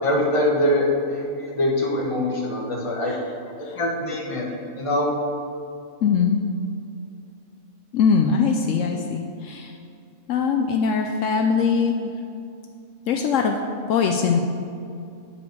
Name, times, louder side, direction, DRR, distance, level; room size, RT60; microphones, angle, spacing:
voice 1, 0.0-3.1 3.6-4.5 4.7-5.1, left 1 dB, 25° left, -2 dB, 1.1 m, -23 dB
voice 2, 6.0-6.4 7.9-9.7 10.3-12.1 13.1-13.6 13.9-14.4, left 6 dB, 75° left, 3 dB, 0.9 m, -21 dB
8.3 x 5.0 x 5.3 m, 2.5 s
omnidirectional pair, 1.4 m